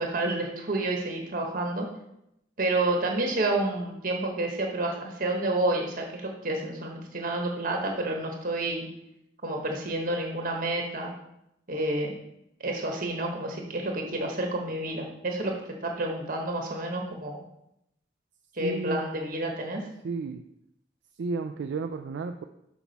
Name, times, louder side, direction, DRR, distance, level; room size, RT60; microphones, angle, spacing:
voice 1, 0.0-1.9 2.6-8.9 9.4-11.1 11.7-12.2 12.6-15.5 15.8-17.4 18.5-19.8, right 2 dB, 50° right, 1 dB, 1.1 m, -29 dB
voice 2, 18.6-19.0 20.0-20.4 21.2-22.4, right 4 dB, 90° right, 6 dB, 0.4 m, -32 dB
6.0 x 5.8 x 4.0 m, 0.81 s
head